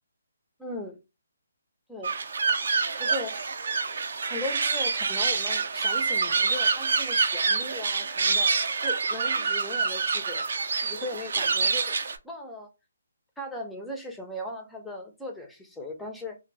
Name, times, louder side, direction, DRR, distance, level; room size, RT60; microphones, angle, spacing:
voice 1, 0.6-1.0 1.9-2.1 3.0-3.4 4.3-8.5 8.8-10.4 10.8-12.0 12.2-12.7 13.4-16.4, left 1 dB, 5° left, 0.4 m, -38 dB
sound 1, 2.0-12.2, right 4 dB, 60° right, 0.4 m, -26 dB
2.6 x 2.0 x 3.0 m
hypercardioid pair, 165°, 0 cm